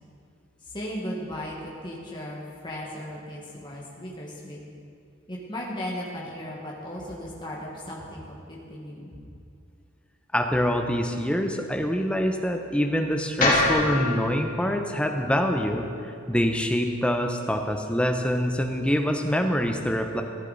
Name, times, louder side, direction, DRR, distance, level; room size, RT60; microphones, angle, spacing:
voice 1, 0.6-4.6 5.3-9.2, equal, 20° left, -4 dB, 1.6 m, -36 dB
voice 2, 10.3-15.9 16.3-20.2, equal, 5° left, 4 dB, 0.7 m, -25 dB
sound 1, 13.4-17.6, left 2 dB, 40° left, 2.4 m, -28 dB
15.0 x 9.8 x 4.1 m, 2.5 s
head